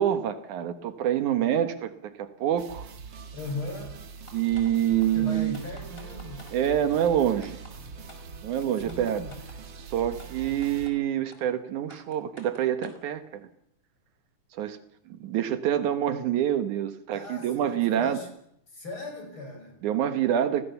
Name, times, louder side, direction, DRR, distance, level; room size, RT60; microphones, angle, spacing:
voice 1, 0.0-2.9 4.3-5.6 6.5-7.6 8.4-9.2 9.9-13.5 14.6-14.8 15.1-18.2 19.8-20.6, right 10 dB, 75° right, 10 dB, 2.6 m, -26 dB
sound 1, 2.6-10.9, right 5 dB, 45° right, 1.7 m, -43 dB
voice 2, 3.3-4.0 5.1-6.4 8.8-9.4 17.1-18.3 18.7-19.8, left 2 dB, 40° left, 4 dB, 6.7 m, -38 dB
sound 2, 4.3-4.7 5.0-5.1 5.5-6.5 7.0-7.1 7.4-7.7 8.1-8.2 8.6-9.6 10.2-10.3 10.6-10.9 11.3-11.4 11.9-13.0, left 1 dB, 15° left, 5.4 m, -50 dB
29.5 x 19.0 x 7.0 m, 0.76 s
omnidirectional pair, 3.6 m